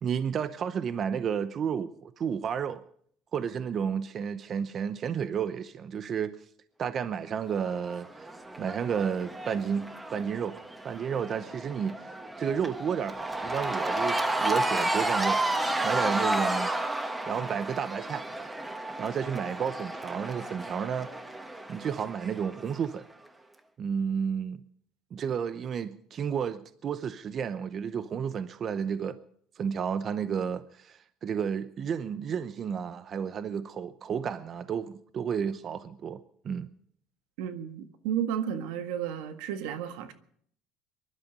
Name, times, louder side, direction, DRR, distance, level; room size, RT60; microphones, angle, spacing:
voice 1, 0.0-2.8 3.3-6.4 6.8-8.2 8.6-12.1 12.4-15.4 15.8-16.7 17.3-18.2 19.0-21.1 21.7-23.1 23.8-24.6 25.1-29.2 29.6-36.2 36.4-36.7, right 7 dB, 40° right, 0.8 m, -32 dB
Cheering / Crowd, 7.6-22.8, right 2 dB, 10° right, 1.2 m, -32 dB
voice 2, 37.4-40.1, right 9 dB, 90° right, 1.6 m, -32 dB
22.5 x 11.5 x 5.2 m
cardioid pair, 115°, 0 cm